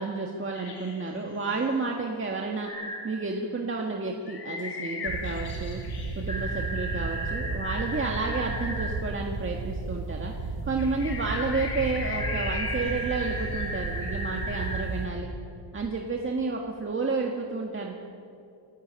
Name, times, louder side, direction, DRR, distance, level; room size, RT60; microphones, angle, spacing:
voice 1, 0.0-2.7 3.0-5.8 6.1-10.3 10.7-15.3 15.7-17.9, right 3 dB, 25° right, 0 dB, 1.7 m, -31 dB
sound 1, 0.5-1.5 4.3-7.4 10.7-14.0, left 4 dB, 60° left, 5.0 m, -38 dB
sound 2, 2.7-3.0 6.3-8.9 12.2-14.8, right 1 dB, 10° left, 5.4 m, -35 dB
sound 3, 5.1-15.0, right 3 dB, 70° right, 4.1 m, -34 dB
28.5 x 12.5 x 8.7 m, 2.6 s
wide cardioid pair, 150°, 45 cm